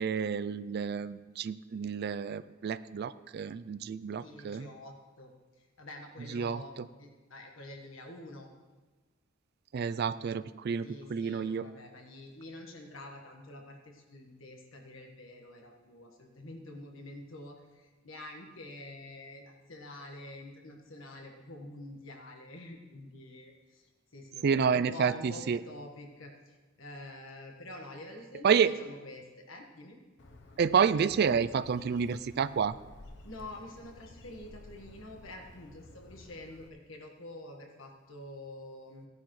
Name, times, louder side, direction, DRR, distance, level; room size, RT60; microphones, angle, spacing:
voice 1, 0.0-4.7 6.3-6.9 9.7-11.7 24.4-25.6 28.4-28.7 30.6-32.8, right 6 dB, 55° right, 14 dB, 0.4 m, -29 dB
voice 2, 4.2-8.5 10.8-30.0 33.2-39.1, left 1 dB, 90° left, 2 dB, 1.5 m, -47 dB
Bird, 30.2-36.7, left 2 dB, 65° left, 0.9 m, -53 dB
16.5 x 10.5 x 3.2 m, 1.2 s
head